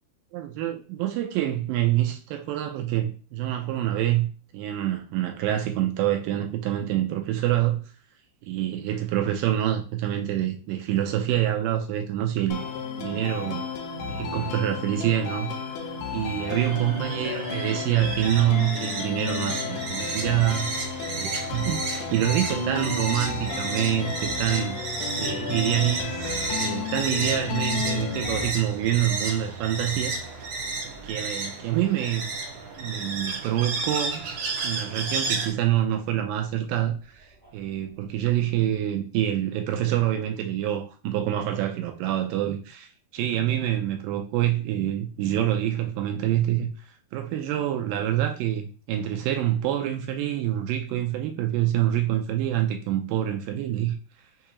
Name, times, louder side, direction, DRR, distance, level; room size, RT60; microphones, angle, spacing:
voice 1, 0.3-7.8 8.4-12.6 13.0-13.7 14.1-15.5 16.1-20.8 21.2-24.8 25.2-30.1 31.0-32.3 32.8-34.2 34.6-46.7 47.1-54.0, right 12 dB, 80° right, 2.1 m, -26 dB
sound 1, 12.5-28.5, left 5 dB, 85° left, 1.8 m, -33 dB
sound 2, 15.8-35.5, right 3 dB, 65° right, 2.4 m, -32 dB
sound 3, 19.8-38.8, right 5 dB, 20° right, 0.5 m, -46 dB
6.3 x 2.4 x 3.0 m
omnidirectional pair, 4.2 m